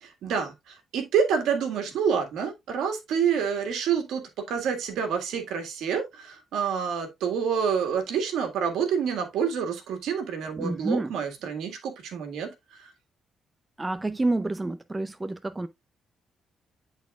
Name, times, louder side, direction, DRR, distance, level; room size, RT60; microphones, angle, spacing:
voice 1, 0.0-12.5 12.8-12.9, right 7 dB, 80° right, 1.8 m, -28 dB
voice 2, 10.6-11.1 13.8-15.7, right 2 dB, 20° right, 0.5 m, -28 dB
10.5 x 4.1 x 2.4 m
cardioid pair, 90°, 0 cm